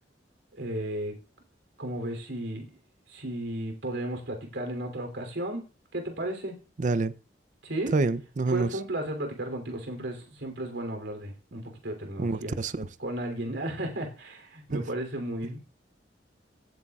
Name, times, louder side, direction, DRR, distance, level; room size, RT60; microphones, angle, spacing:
voice 1, 0.5-1.1 1.8-2.7 3.1-5.6 5.9-6.5 7.6-7.9 8.5-12.6 13.0-15.6, right 1 dB, 85° right, 3.1 m, -34 dB
voice 2, 6.8-7.1 7.9-8.8 12.2-12.9 14.7-14.8, right 3 dB, 45° right, 0.5 m, -27 dB
16.5 x 8.1 x 2.4 m
head